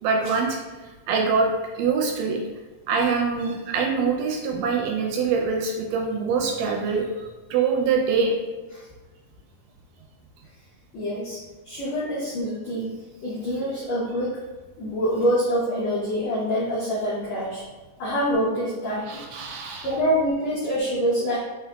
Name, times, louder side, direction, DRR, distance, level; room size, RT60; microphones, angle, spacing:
voice 1, 0.0-0.6 1.1-1.5 1.8-2.4 2.9-8.3 19.0-19.9, right 5 dB, 80° right, 1 dB, 2.0 m, -24 dB
voice 2, 10.9-11.4 11.6-12.9 13.2-14.4 14.8-17.6 18.0-19.2 19.8-21.4, equal, 85° left, -6 dB, 1.4 m, -25 dB
4.7 x 3.9 x 2.2 m, 1.3 s
omnidirectional pair, 4.1 m